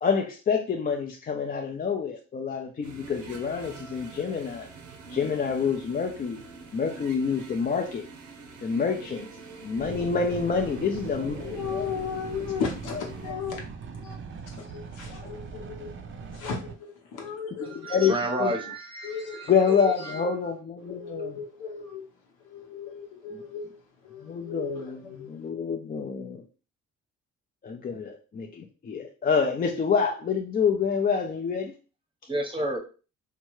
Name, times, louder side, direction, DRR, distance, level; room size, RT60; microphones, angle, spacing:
voice 1, 0.0-4.7 5.1-6.4 6.7-8.1 8.6-9.3 9.6-11.9 17.6-18.1 18.4-18.5 19.5-21.3 24.2-25.0 25.3-26.4 27.6-31.7, left 6 dB, 30° left, 0.4 m, -27 dB
sound 1, 2.8-13.3, right 4 dB, 90° right, 0.7 m, -46 dB
sound 2, 9.8-16.8, right 5 dB, 40° right, 0.5 m, -40 dB
voice 2, 11.2-13.6 14.0-14.2 14.5-15.9 16.3-18.0 19.0-20.1 20.9-22.1 22.4-23.7 24.0-25.3, left 6 dB, 85° left, 1.0 m, -36 dB
voice 3, 17.7-19.5 19.8-20.3 32.3-32.8, right 1 dB, 15° right, 0.8 m, -31 dB
2.8 x 2.3 x 3.0 m
cardioid pair, 90°, 30 cm